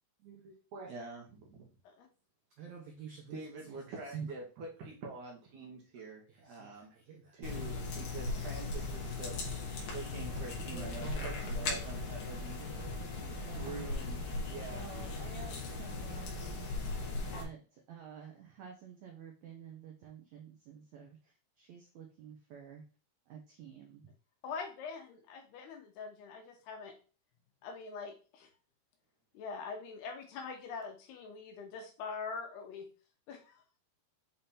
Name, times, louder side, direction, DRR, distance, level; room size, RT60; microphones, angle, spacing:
voice 1, 0.2-0.9 2.6-3.4 3.7-3.8 4.1-4.3 6.3-7.4 10.4-12.0 12.6-16.7 17.2-21.2 21.6-22.8 23.3-24.0, right 7 dB, 85° right, 1 dB, 1.6 m, -50 dB
voice 2, 0.9-1.7 3.3-6.9 7.3-9.4 9.9-12.6 13.5-15.1, right 3 dB, 65° right, -1 dB, 2.3 m, -46 dB
sound 1, 7.4-17.4, left 3 dB, 60° left, 2.8 m, -38 dB
voice 3, 24.4-27.0 27.6-28.5 29.3-32.9 33.3-33.6, left 5 dB, 80° left, 3 dB, 3.2 m, -43 dB
7.3 x 3.5 x 4.2 m, 0.35 s
omnidirectional pair, 4.7 m